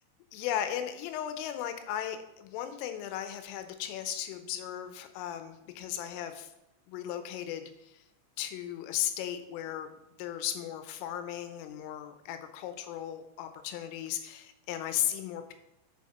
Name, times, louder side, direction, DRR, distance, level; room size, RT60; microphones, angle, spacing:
voice 1, 0.3-6.5 6.9-8.0 8.4-15.5, left 11 dB, 85° left, 8 dB, 3.3 m, -36 dB
7.1 x 6.5 x 4.2 m, 0.87 s
omnidirectional pair, 5.7 m